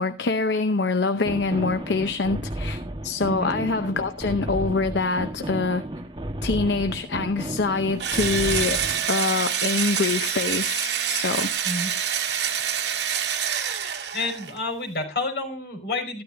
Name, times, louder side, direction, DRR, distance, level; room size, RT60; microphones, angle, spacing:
voice 1, 0.0-5.8 6.4-11.5, left 3 dB, 80° left, 0.8 m, -25 dB
sound 1, 1.2-9.1, right 1 dB, 25° right, 1.4 m, -33 dB
Engine / Drill, 8.0-14.6, right 8 dB, 75° right, 2.0 m, -26 dB
voice 2, 14.1-16.2, left 2 dB, 60° left, 5.2 m, -29 dB
14.0 x 12.5 x 2.6 m
head